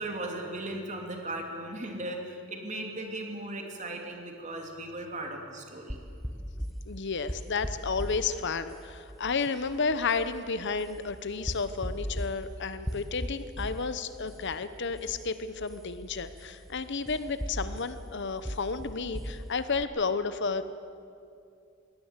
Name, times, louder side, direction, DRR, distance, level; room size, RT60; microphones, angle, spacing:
voice 1, 0.0-6.0, right 1 dB, 35° right, 2 dB, 2.9 m, -37 dB
sound 1, 5.9-19.8, equal, ahead, 0.8 m, -40 dB
voice 2, 6.9-20.6, left 4 dB, 50° left, 12 dB, 0.8 m, -32 dB
22.0 x 17.5 x 8.1 m, 2.5 s
head